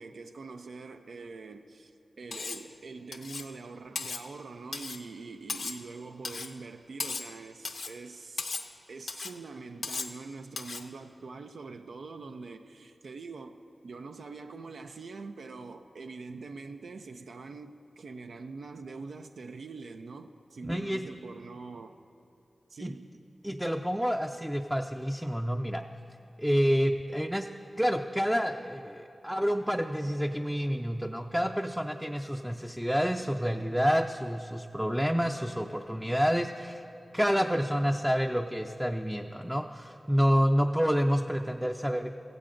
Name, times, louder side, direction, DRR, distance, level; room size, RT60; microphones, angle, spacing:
voice 1, 0.0-8.6 8.9-22.0 22.7-23.1, right 4 dB, 85° right, 0.4 m, -44 dB
Cutlery silverware, 2.3-2.7 3.1-3.5 3.9-4.2 4.7-5.0 5.5-5.8 6.2-6.5 7.0-7.3 7.6-8.0 8.4-8.7 9.1-9.4 9.8-10.2 10.6-10.9, left 4 dB, 85° left, 0.6 m, -36 dB
voice 2, 20.6-21.0 22.8-22.9 23.4-25.8 26.4-27.5 27.8-36.8 37.1-42.1, equal, 5° right, 0.4 m, -28 dB
16.0 x 15.5 x 2.5 m
cardioid pair, 55°, 0 cm